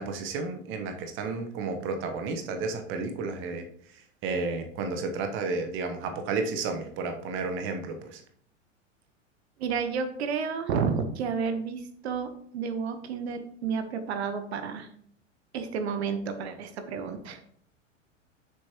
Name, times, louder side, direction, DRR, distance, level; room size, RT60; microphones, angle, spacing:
voice 1, 0.0-3.6 4.2-8.2, right 4 dB, 30° right, 6 dB, 1.1 m, -32 dB
voice 2, 9.6-14.9 15.5-17.5, right 6 dB, 55° right, 9 dB, 1.1 m, -31 dB
9.4 x 7.0 x 3.0 m, 0.63 s
figure-of-eight pair, 90°, 38 cm